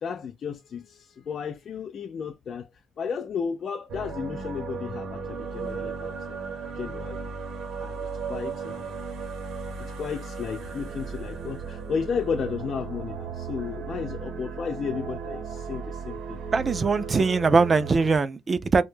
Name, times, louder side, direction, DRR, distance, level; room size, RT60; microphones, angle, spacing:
voice 1, 0.0-2.7 3.0-7.3 7.8-9.0 9.8-16.4 17.1-17.3, left 6 dB, 55° left, 0.4 m, -33 dB
sound 1, 3.9-18.2, right 5 dB, 75° right, 0.8 m, -35 dB
voice 2, 16.5-18.8, right 4 dB, 35° right, 0.3 m, -21 dB
2.2 x 2.0 x 3.1 m
cardioid pair, 90°, 0 cm